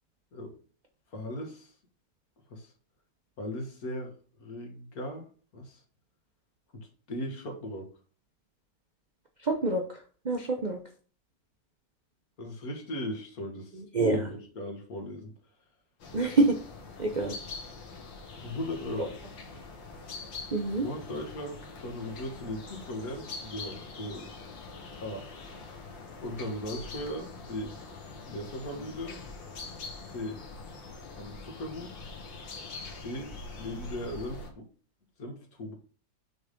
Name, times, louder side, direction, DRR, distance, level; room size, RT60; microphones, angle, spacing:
voice 1, 1.1-1.7 2.5-2.7 3.4-4.1 4.4-5.3 5.5-5.8 7.1-7.9 12.4-13.7 14.1-15.3 18.3-19.1 20.8-24.3 25.0-25.3 26.2-27.8 28.3-29.2 30.1-30.4 31.2-31.9 33.0-34.7 35.2-35.7, left 1 dB, 50° left, 2 dB, 1.8 m, -38 dB
voice 2, 9.4-10.8 13.7-14.3 16.1-16.6 17.0-17.4 20.5-20.9, right 3 dB, 60° right, 3 dB, 0.4 m, -27 dB
sound 1, 16.0-34.5, left 4 dB, 80° left, 2.0 m, -44 dB
6.4 x 3.4 x 5.1 m, 0.40 s
omnidirectional pair, 2.0 m